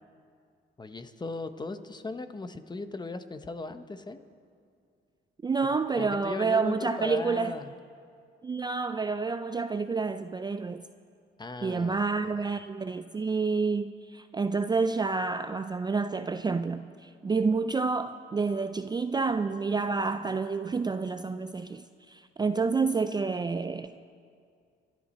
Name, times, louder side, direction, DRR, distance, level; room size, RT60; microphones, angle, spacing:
voice 1, 0.8-4.2 6.0-7.7 11.4-12.4, left 3 dB, 20° left, 10 dB, 0.9 m, -37 dB
voice 2, 5.4-7.5 8.4-10.8 11.6-23.9, right 4 dB, 20° right, 10 dB, 0.4 m, -29 dB
26.0 x 11.5 x 4.3 m, 2.3 s
cardioid pair, 90°, 20 cm